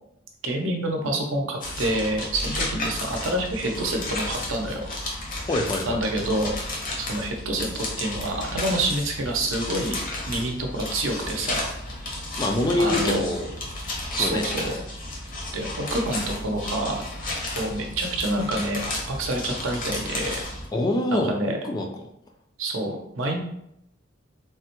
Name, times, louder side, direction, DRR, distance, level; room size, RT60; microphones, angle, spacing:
voice 1, 0.4-4.8 5.9-6.6 7.1-10.0 10.3-11.6 12.8-13.2 14.2-14.8 15.5-17.0 17.5-20.4 21.1-21.6 22.6-23.4, right 1 dB, 75° right, 2 dB, 0.6 m, -27 dB
sound 1, 1.6-20.7, left 2 dB, 45° left, 0.7 m, -32 dB
voice 2, 5.5-6.0 12.4-13.5 14.1-14.4 20.7-21.9, left 1 dB, 20° left, 3 dB, 0.3 m, -25 dB
3.3 x 2.1 x 2.9 m, 0.77 s
head